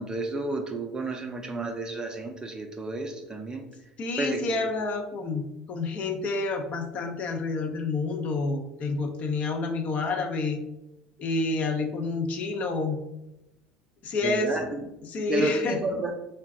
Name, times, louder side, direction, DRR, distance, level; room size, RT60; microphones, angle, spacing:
voice 1, 0.0-3.7 4.2-4.7 14.2-14.8 15.3-16.1, right 2 dB, 20° right, 3 dB, 0.5 m, -31 dB
voice 2, 4.0-10.6 11.2-13.0 14.0-14.6 15.1-15.8, left 3 dB, 45° left, 4 dB, 0.5 m, -29 dB
3.9 x 2.2 x 3.6 m, 0.92 s
figure-of-eight pair, 65°, 3 cm